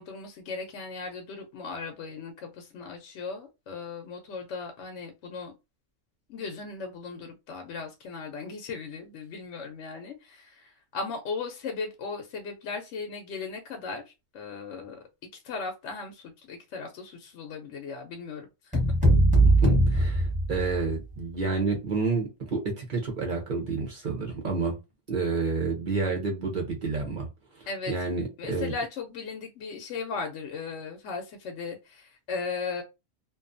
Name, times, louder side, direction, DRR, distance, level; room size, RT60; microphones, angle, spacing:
voice 1, 0.0-5.5 6.3-15.0 15.3-18.8 27.7-27.9 28.4-32.8, left 4 dB, 65° left, 0.8 m, -37 dB
sound 1, 18.7-21.0, right 1 dB, 5° right, 0.8 m, -21 dB
voice 2, 19.5-24.8 25.1-27.3 27.5-28.7, right 4 dB, 50° right, 0.6 m, -29 dB
2.5 x 2.3 x 2.5 m
omnidirectional pair, 1.5 m